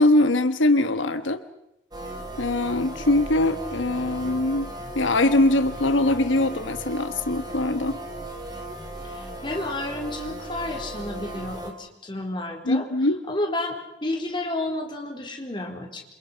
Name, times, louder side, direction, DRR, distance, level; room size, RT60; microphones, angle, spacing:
voice 1, 0.0-1.4 2.4-4.7 4.9-8.0 12.7-13.2, left 2 dB, 85° left, 10 dB, 1.3 m, -22 dB
sound 1, 1.9-11.7, right 1 dB, 20° right, 3.9 m, -36 dB
voice 2, 9.0-12.9 13.3-16.1, left 2 dB, 25° left, 2 dB, 4.4 m, -31 dB
28.5 x 27.0 x 5.7 m, 0.86 s
head